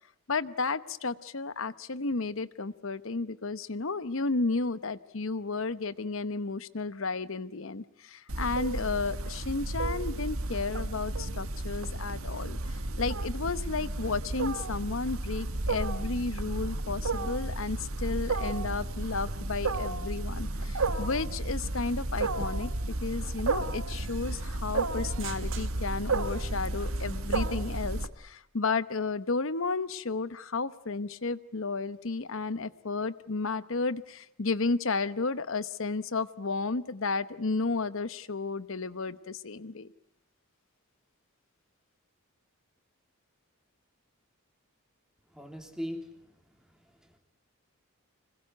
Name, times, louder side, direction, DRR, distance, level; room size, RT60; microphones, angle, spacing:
voice 1, 0.3-22.7 23.0-39.9, left 3 dB, 65° left, 15 dB, 0.9 m, -33 dB
Wild animals, 8.3-28.1, right 2 dB, 75° right, 1.6 m, -32 dB
sound 1, 23.9-27.9, right 10 dB, 60° right, 1.9 m, -49 dB
voice 2, 45.3-46.1 47.0-47.2, equal, 5° right, 4 dB, 3.0 m, -39 dB
25.5 x 21.0 x 9.5 m, 0.79 s
head